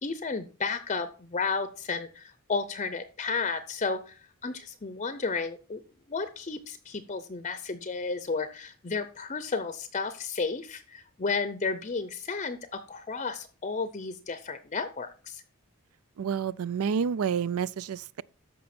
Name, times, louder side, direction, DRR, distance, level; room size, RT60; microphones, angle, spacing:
voice 1, 0.0-5.8 6.1-15.4, left 4 dB, 30° left, 0.6 m, -33 dB
voice 2, 16.2-18.2, right 7 dB, 75° right, 0.4 m, -29 dB
13.5 x 5.3 x 4.3 m
head